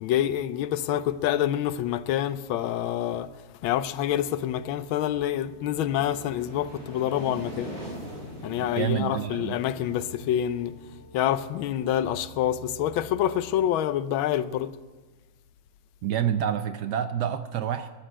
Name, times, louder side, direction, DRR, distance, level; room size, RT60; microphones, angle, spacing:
voice 1, 0.0-3.3 3.6-7.7 8.4-10.8 11.1-14.7, left 11 dB, 90° left, 1.4 m, -27 dB
sound 1, 4.1-13.7, left 1 dB, 40° left, 0.3 m, -50 dB
sound 2, 5.3-11.9, right 1 dB, 30° right, 6.1 m, -43 dB
voice 2, 8.7-9.6 16.0-17.9, right 9 dB, 70° right, 1.0 m, -28 dB
12.5 x 8.2 x 8.8 m
omnidirectional pair, 2.1 m